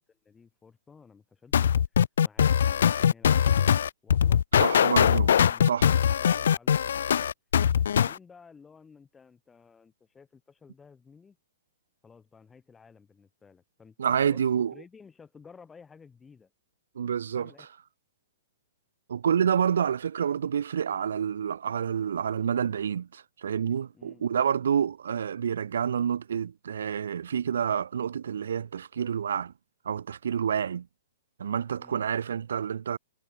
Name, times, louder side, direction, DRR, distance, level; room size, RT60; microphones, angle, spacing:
voice 1, 0.0-1.8 2.2-4.4 4.8-7.3 7.8-11.4 12.0-16.5 17.4-17.7 23.9-24.3 31.8-32.0, left 5 dB, 10° left, 7.0 m, -54 dB
sound 1, 1.5-8.2, left 8 dB, 75° left, 0.3 m, -22 dB
voice 2, 4.6-5.4 5.6-5.9 14.0-14.7 17.0-17.7 19.1-29.5 29.8-30.9 31.4-33.0, right 8 dB, 80° right, 0.7 m, -28 dB
hypercardioid pair, 160°, 0 cm